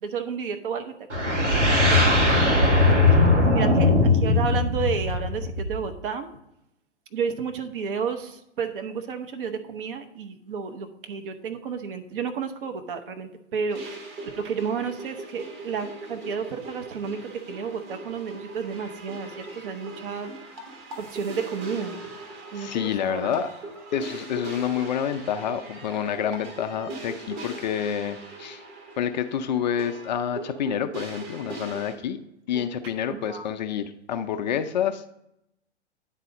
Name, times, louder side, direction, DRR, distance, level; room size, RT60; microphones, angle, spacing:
voice 1, 0.0-0.9 1.3-1.4 1.9-2.6 3.1-6.3 7.1-14.0 14.4-17.2 17.5-20.3 21.0-22.0 22.5-23.3 32.5-32.7 33.1-33.5, right 6 dB, 50° right, 6 dB, 0.9 m, -32 dB
sound 1, 1.1-5.9, left 2 dB, 80° right, 1.6 m, -19 dB
sound 2, 13.7-31.9, right 2 dB, 30° right, 1.4 m, -40 dB
voice 2, 22.5-23.5 23.9-28.6 29.0-32.2 32.5-35.1, left 8 dB, 40° left, 8 dB, 0.4 m, -28 dB
9.2 x 4.1 x 5.0 m, 0.82 s
figure-of-eight pair, 110°, 35 cm